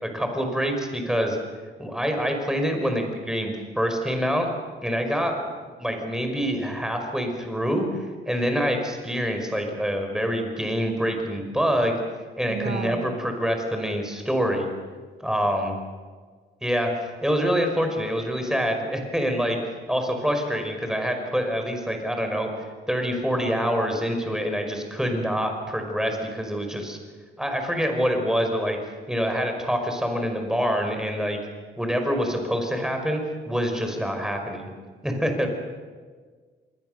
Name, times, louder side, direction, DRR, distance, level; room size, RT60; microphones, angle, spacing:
voice 1, 0.0-1.4 1.8-4.5 4.8-5.5 5.8-12.0 12.4-14.7 15.2-15.7 16.6-19.6 19.9-22.5 22.9-27.0 27.4-28.8 29.1-31.4 31.8-34.7 35.0-35.5, equal, 5° right, 4 dB, 5.3 m, -26 dB
voice 2, 12.5-13.2, right 7 dB, 60° right, 5 dB, 1.9 m, -33 dB
26.5 x 21.0 x 6.7 m, 1.5 s
cardioid pair, 90°, 20 cm